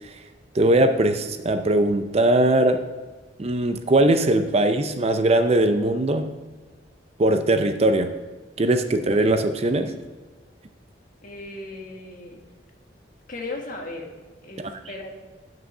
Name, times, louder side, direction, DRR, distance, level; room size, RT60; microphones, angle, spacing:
voice 1, 0.5-2.8 3.4-6.3 7.2-8.1 8.6-9.9, right 1 dB, 35° right, 8 dB, 0.5 m, -20 dB
voice 2, 11.2-12.4 13.3-14.1 14.4-15.2, left 2 dB, 50° left, 1 dB, 1.5 m, -36 dB
9.9 x 6.2 x 5.4 m, 1.3 s
head